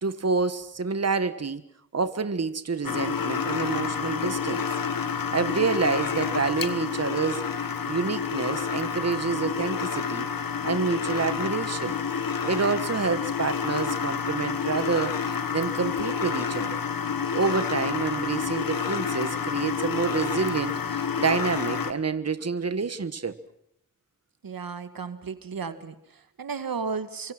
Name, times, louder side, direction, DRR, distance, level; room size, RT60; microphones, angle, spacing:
voice 1, 0.0-1.6 1.9-4.6 5.3-7.4 7.9-10.3 10.6-12.0 12.4-16.8 17.3-23.3, right 4 dB, 45° right, 12 dB, 1.5 m, -28 dB
sound 1, 2.8-21.9, left 6 dB, 85° left, 1.7 m, -29 dB
voice 2, 24.4-27.3, right 5 dB, 85° right, 11 dB, 2.1 m, -34 dB
29.5 x 25.0 x 6.1 m, 0.75 s
cardioid pair, 55°, 34 cm